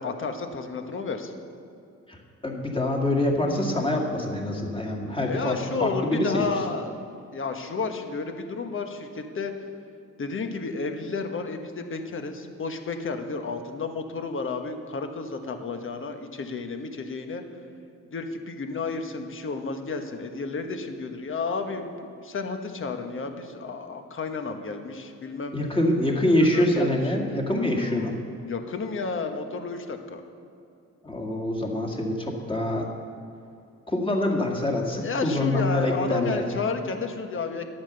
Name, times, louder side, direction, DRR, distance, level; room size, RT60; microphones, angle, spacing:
voice 1, 0.0-1.3 5.3-7.0 7.3-9.5 10.2-17.4 18.1-25.5 26.5-27.1 27.7-28.2 28.5-30.2 35.0-37.7, left 4 dB, 40° left, 6 dB, 1.3 m, -31 dB
voice 2, 2.4-6.4 25.5-28.1 31.0-32.9 33.9-36.4, left 1 dB, 15° left, -1 dB, 2.2 m, -25 dB
11.5 x 8.8 x 6.9 m, 2.5 s
cardioid pair, 90°, 30 cm